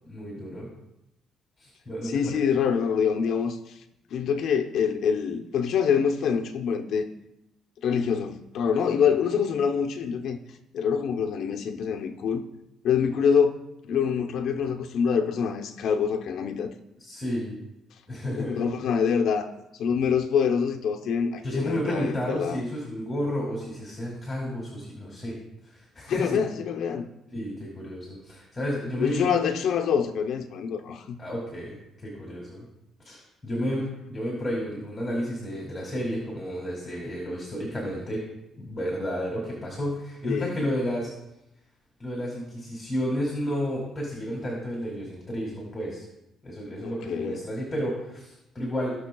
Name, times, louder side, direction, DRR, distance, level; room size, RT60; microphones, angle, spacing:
voice 1, 0.1-0.7 1.6-2.2 17.0-17.5 18.1-18.7 21.4-25.3 25.6-26.4 27.3-29.3 31.2-32.7 33.0-38.2 38.6-41.1 42.0-46.0 46.4-48.9, equal, 20° left, -3 dB, 2.5 m, -31 dB
voice 2, 2.0-3.7 4.1-7.1 7.8-10.4 10.7-12.4 12.8-16.7 18.4-19.5 19.8-22.6 26.1-27.1 29.0-31.2 40.3-40.6 46.8-47.4, left 7 dB, 70° left, 5 dB, 0.8 m, -25 dB
17.0 x 6.3 x 2.3 m, 0.88 s
cardioid pair, 105°, 0 cm